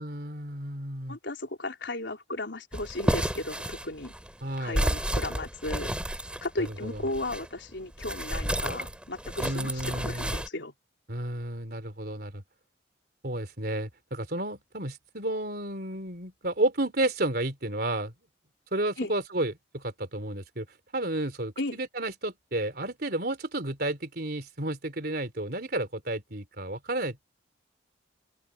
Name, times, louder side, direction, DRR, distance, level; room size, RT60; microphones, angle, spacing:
voice 1, 0.0-1.2 4.4-4.9 6.6-7.0 9.4-10.3 11.1-12.4 13.2-18.1 18.7-20.7 20.9-27.2, right 1 dB, 55° right, 3.9 m, -32 dB
voice 2, 1.1-4.1 4.6-5.9 6.4-10.7 19.0-19.1 21.6-21.8, left 2 dB, 75° left, 3.9 m, -35 dB
sound 1, 2.7-7.5 8.0-10.5, equal, 5° right, 3.6 m, -31 dB
open air
head